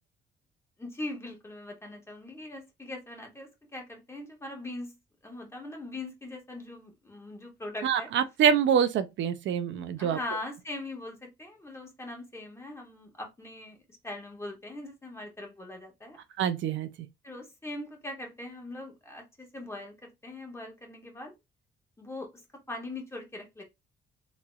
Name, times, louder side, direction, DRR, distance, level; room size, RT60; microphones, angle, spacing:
voice 1, 0.8-4.9 5.2-8.1 10.0-13.8 14.0-16.2 17.2-21.3 22.0-22.4 22.7-23.6, left 2 dB, 15° left, 1.5 m, -41 dB
voice 2, 7.8-10.2 16.4-16.9, right 8 dB, 70° right, 0.5 m, -25 dB
3.8 x 3.0 x 2.3 m
cardioid pair, 90°, 20 cm